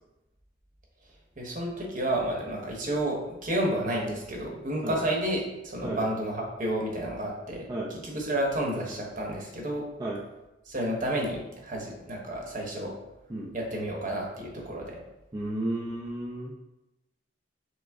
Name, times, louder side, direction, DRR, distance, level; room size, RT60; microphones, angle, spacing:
voice 1, 1.4-7.7 8.0-9.8 10.6-12.9 13.5-15.0, right 1 dB, 40° right, -1 dB, 1.0 m, -31 dB
voice 2, 15.3-16.5, right 1 dB, 20° right, -5 dB, 0.4 m, -33 dB
6.1 x 2.1 x 3.5 m, 0.98 s
head